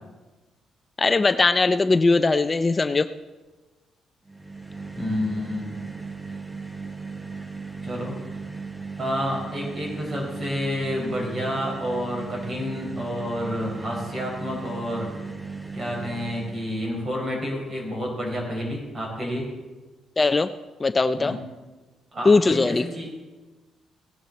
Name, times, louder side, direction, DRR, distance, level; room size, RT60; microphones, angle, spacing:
voice 1, 1.0-3.1 20.2-20.5 20.8-21.4 22.3-22.9, left 3 dB, 25° left, 12 dB, 0.4 m, -20 dB
sound 1, 4.3-16.9, right 4 dB, 15° right, 0.9 m, -37 dB
voice 2, 4.9-5.7 7.8-8.2 9.0-15.1 15.7-19.5 21.2-21.4 22.1-23.1, equal, 35° right, 0 dB, 4.8 m, -29 dB
17.0 x 10.5 x 4.1 m, 1.2 s
cardioid pair, 90°, 0 cm